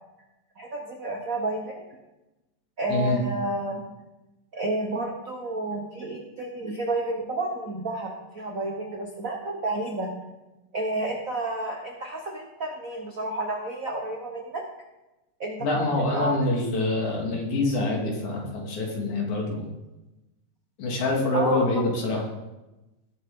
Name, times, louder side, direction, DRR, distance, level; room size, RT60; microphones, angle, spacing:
voice 1, 0.6-1.9 2.8-3.8 4.5-10.1 10.7-14.6 15.4-16.4 21.3-21.7, right 2 dB, 90° right, 1 dB, 0.7 m, -31 dB
voice 2, 2.9-3.2 15.6-19.6 20.8-22.2, left 2 dB, 85° left, -1 dB, 3.6 m, -25 dB
18.5 x 7.1 x 3.7 m, 1.0 s
omnidirectional pair, 3.3 m